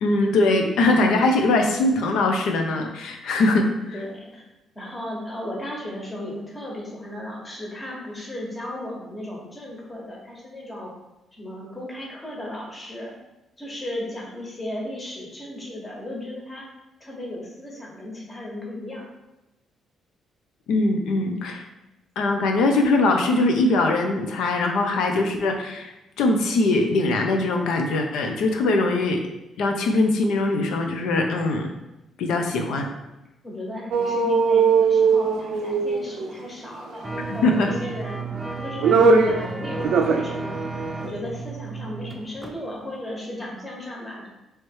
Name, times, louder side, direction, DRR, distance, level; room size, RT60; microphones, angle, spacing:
voice 1, 0.0-3.6 20.7-21.6 22.2-29.2 29.6-31.7 32.2-32.9 37.3-37.7, left 2 dB, 85° left, 3 dB, 0.6 m, -21 dB
voice 2, 3.9-4.4 4.7-10.9 11.3-13.1 13.6-16.7 17.0-19.1 33.4-38.2 38.6-40.6 41.0-44.3, left 1 dB, 25° left, -3 dB, 1.3 m, -35 dB
sound 1, 33.9-36.5 37.7-38.3 38.6-39.5 39.8-40.3 40.6-40.7, right 5 dB, 75° right, 0.4 m, -19 dB
sound 2, 37.0-42.6 42.9-43.0, right 3 dB, 15° right, 0.6 m, -33 dB
3.2 x 3.2 x 4.6 m, 0.97 s
cardioid pair, 90°, 0 cm